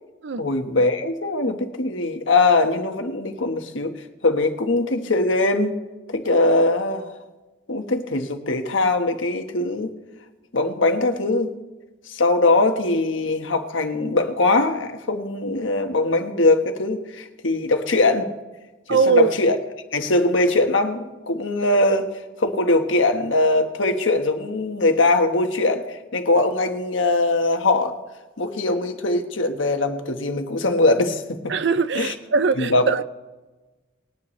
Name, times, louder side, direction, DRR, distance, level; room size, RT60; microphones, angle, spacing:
voice 1, 0.4-3.9 4.2-5.7 6.1-7.1 7.7-9.9 10.5-11.5 12.1-18.3 18.9-19.6 19.9-22.1 22.4-27.9 28.4-31.5 31.9-32.1 32.6-32.9, left 2 dB, 90° left, 1.3 m, -21 dB
voice 2, 18.9-19.3 31.5-33.0, right 4 dB, 65° right, 0.5 m, -21 dB
20.5 x 10.0 x 3.2 m
head